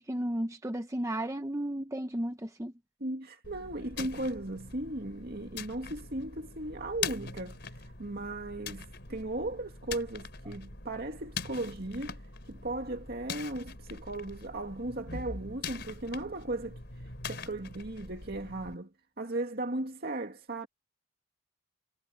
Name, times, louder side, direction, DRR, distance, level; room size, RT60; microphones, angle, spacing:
voice 1, 0.0-2.7, right 1 dB, 15° right, 0.8 m, -34 dB
voice 2, 3.0-12.2 12.5-16.8 17.3-18.9 19.2-20.7, right 2 dB, 50° right, 2.3 m, -37 dB
sound 1, 3.4-18.7, left 5 dB, 55° left, 5.0 m, -43 dB
head